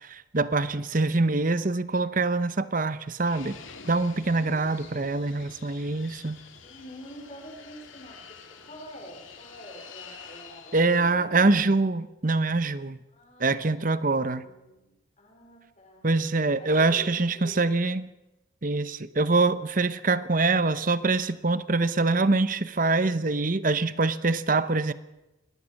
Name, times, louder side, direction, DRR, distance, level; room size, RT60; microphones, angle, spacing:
voice 1, 0.0-3.6 3.8-6.4 10.7-13.0 13.4-14.4 16.0-18.1 18.6-24.9, right 3 dB, 40° right, 14 dB, 0.8 m, -24 dB
Fixed-wing aircraft airplane, 3.2-11.0, left 5 dB, 85° left, 2.5 m, -48 dB
voice 2, 4.2-5.1 6.6-11.5 13.1-17.7, equal, 35° left, 2 dB, 5.1 m, -47 dB
24.0 x 18.5 x 6.5 m, 0.98 s
head